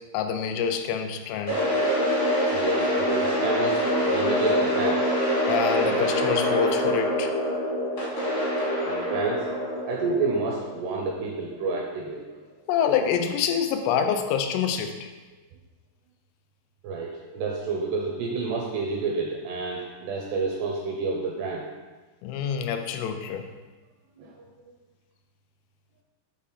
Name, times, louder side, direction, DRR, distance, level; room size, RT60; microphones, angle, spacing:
voice 1, 0.1-1.6 5.5-7.3 12.7-15.1 22.2-23.4, left 7 dB, 85° left, 6 dB, 3.1 m, -26 dB
sound 1, 1.5-11.5, equal, 40° left, 1.0 m, -25 dB
voice 2, 2.5-5.2 7.5-8.3 8.8-9.5 9.9-12.3 16.8-21.7 24.2-24.5, right 3 dB, 80° right, -1 dB, 2.4 m, -30 dB
8.2 x 3.7 x 5.6 m, 1.3 s
omnidirectional pair, 5.5 m